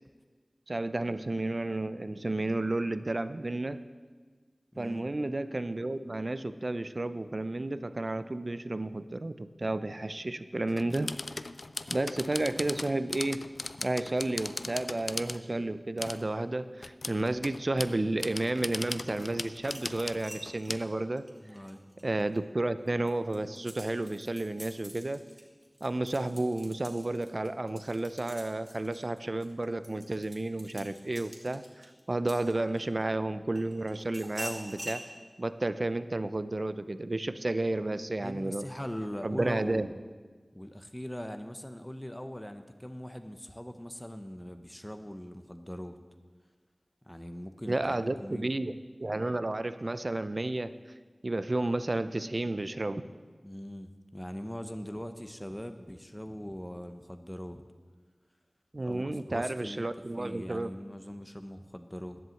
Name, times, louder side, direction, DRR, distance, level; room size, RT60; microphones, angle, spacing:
voice 1, 0.7-3.8 4.8-11.1 11.9-13.5 13.8-21.3 22.0-25.2 25.8-35.0 35.4-38.6 39.2-39.9 47.7-48.7 49.0-50.7 51.2-53.0 58.7-60.7, right 2 dB, 50° right, 12 dB, 0.5 m, -32 dB
voice 2, 4.7-5.1 21.4-21.8 38.2-40.0 40.5-46.0 47.0-48.5 53.4-57.6 58.8-59.9 60.2-62.2, equal, 10° left, 7 dB, 0.7 m, -41 dB
sound 1, 10.7-15.4 16.0-16.2 16.8-20.8, left 2 dB, 70° left, 0.4 m, -38 dB
sound 2, 19.6-22.4 22.9-33.0 33.5-35.0, right 1 dB, 25° right, 2.2 m, -46 dB
10.5 x 7.8 x 7.6 m, 1.4 s
wide cardioid pair, 60°, 0 cm